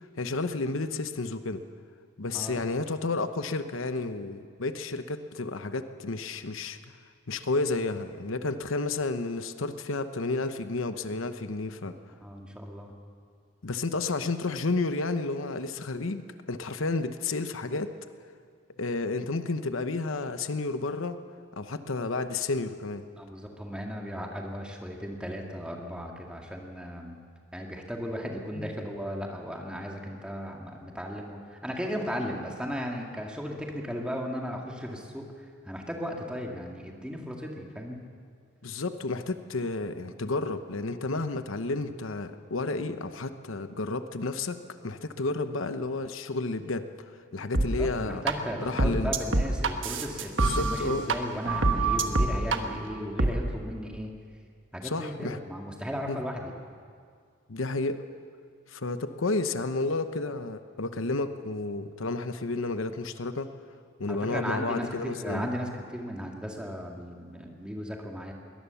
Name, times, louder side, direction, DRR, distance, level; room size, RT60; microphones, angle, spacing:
voice 1, 0.2-1.6 2.2-6.8 7.3-11.9 13.6-17.9 18.8-21.2 21.6-23.0 28.5-28.7 38.6-48.2 48.6-49.1 50.4-51.1 54.8-55.4 56.1-56.2 57.5-58.0 58.7-63.5 64.0-65.5, left 3 dB, 85° left, 10 dB, 0.9 m, -31 dB
voice 2, 2.3-2.6 12.1-12.9 23.2-27.2 27.5-38.0 47.8-54.1 54.7-56.5 64.1-68.3, equal, 5° right, 0 dB, 2.0 m, -36 dB
sound 1, 47.5-47.7 48.3-48.4 48.8-51.1 51.4-52.6 53.2-53.3, right 3 dB, 70° right, 1.4 m, -25 dB
22.0 x 18.5 x 7.0 m, 2.1 s
head